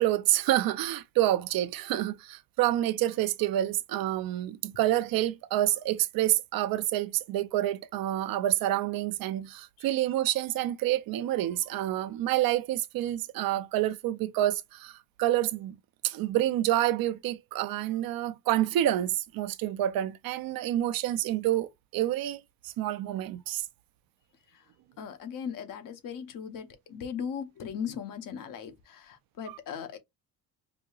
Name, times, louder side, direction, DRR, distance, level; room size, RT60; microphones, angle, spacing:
voice 1, 0.0-15.8 16.0-23.7 29.5-29.6, right 13 dB, 70° right, 0.5 m, -28 dB
voice 2, 25.0-30.0, left 7 dB, 60° left, 0.9 m, -38 dB
5.0 x 2.8 x 2.3 m
cardioid pair, 175°, 37 cm